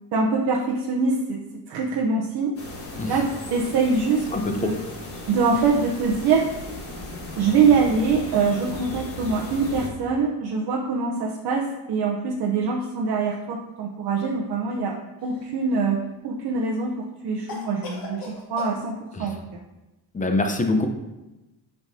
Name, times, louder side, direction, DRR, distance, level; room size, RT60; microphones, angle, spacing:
voice 1, 0.1-2.5 3.0-4.8 5.3-6.5 7.4-14.9 15.2-19.6, right 4 dB, 65° right, -2 dB, 0.9 m, -24 dB
sound 1, 2.6-9.9, left 1 dB, 35° left, 1.4 m, -36 dB
voice 2, 4.3-4.7 19.1-19.3 20.1-20.9, left 2 dB, 20° left, 4 dB, 0.7 m, -24 dB
Cough, 15.2-16.0 17.5-18.8, left 3 dB, 60° left, 1.9 m, -38 dB
8.1 x 5.7 x 2.7 m, 1.0 s
cardioid pair, 125°, 40 cm